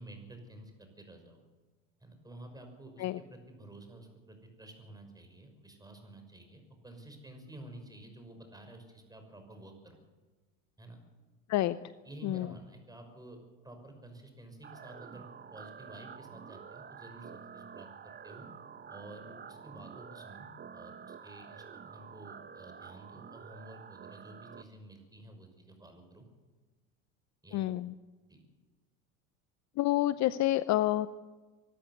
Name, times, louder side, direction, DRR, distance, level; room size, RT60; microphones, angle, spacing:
voice 1, 0.0-1.4 2.0-10.0 10.8-11.0 12.0-13.4 13.6-18.5 18.9-26.2 27.4-27.6 28.3-28.4, right 1 dB, 10° right, 5 dB, 5.9 m, -51 dB
voice 2, 12.2-12.5 27.5-27.9 29.8-31.1, left 15 dB, 45° left, 15 dB, 0.7 m, -28 dB
sound 1, 14.6-24.6, right 7 dB, 25° right, 1.2 m, -49 dB
24.5 x 14.0 x 8.1 m, 1.3 s
supercardioid pair, 100°, 40 cm